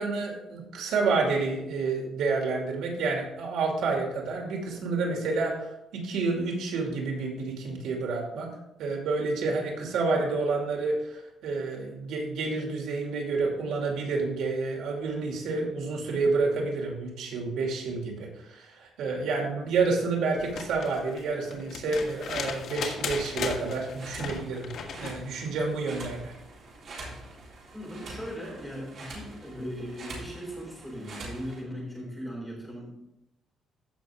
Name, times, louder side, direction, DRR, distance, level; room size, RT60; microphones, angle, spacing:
voice 1, 0.0-5.5 5.9-8.5 8.8-24.7 25.0-26.3, right 3 dB, 80° right, 0 dB, 2.5 m, -29 dB
sound 1, 20.4-25.2 26.9-27.0, left 5 dB, 60° left, 1.5 m, -36 dB
sound 2, 23.5-31.6, right 2 dB, 45° right, 3.7 m, -45 dB
voice 2, 27.7-33.0, equal, ahead, -3 dB, 3.8 m, -38 dB
15.0 x 6.1 x 3.6 m, 0.85 s
cardioid pair, 170°, 0 cm